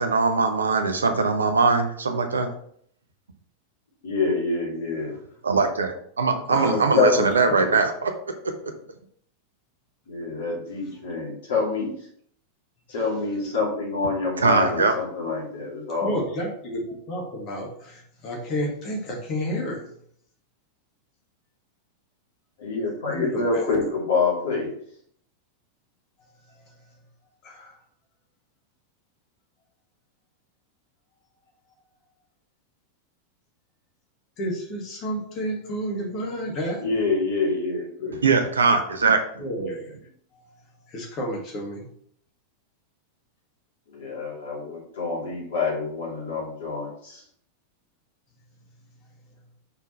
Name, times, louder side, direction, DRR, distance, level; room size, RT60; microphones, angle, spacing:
voice 1, 0.0-2.5 5.4-8.1 8.4-8.7 14.4-14.9 38.2-39.5, right 4 dB, 75° right, 6 dB, 0.9 m, -21 dB
voice 2, 4.0-5.1 6.6-7.1 10.1-12.0 12.9-16.2 22.6-24.7 36.8-38.1 43.9-47.2, left 4 dB, 60° left, -4 dB, 2.9 m, -26 dB
voice 3, 6.5-7.7 16.0-19.9 23.1-23.6 26.5-26.7 27.4-27.8 34.4-36.8 38.0-38.2 39.4-40.0 40.3-40.5 40.9-41.9, equal, 35° left, -1 dB, 2.2 m, -31 dB
5.5 x 4.6 x 4.6 m, 0.64 s
figure-of-eight pair, 90°, 0 cm